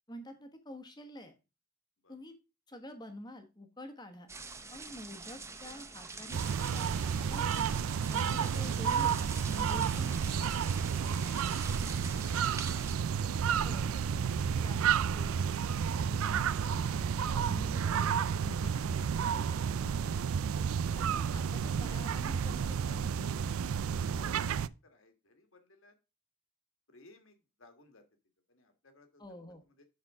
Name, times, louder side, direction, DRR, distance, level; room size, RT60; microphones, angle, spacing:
voice 1, 0.1-1.3 2.1-2.3 2.7-4.3 4.7-7.5 8.1-10.2 13.6-14.0 14.6-14.8 15.1-15.5 16.0-20.1 21.0-23.5 29.2-29.6, left 1 dB, 20° left, 6 dB, 1.3 m, -48 dB
sound 1, 4.3-12.9, right 3 dB, 15° right, 0.7 m, -46 dB
sound 2, 6.3-24.7, right 7 dB, 75° right, 0.4 m, -31 dB
voice 2, 10.8-11.6 12.0-12.8 13.5-13.6 14.3-14.5 24.1-25.9 26.9-28.0 28.5-29.2 29.8-29.9, left 1 dB, 65° left, 7 dB, 1.6 m, -59 dB
11.0 x 4.3 x 3.6 m, 0.28 s
head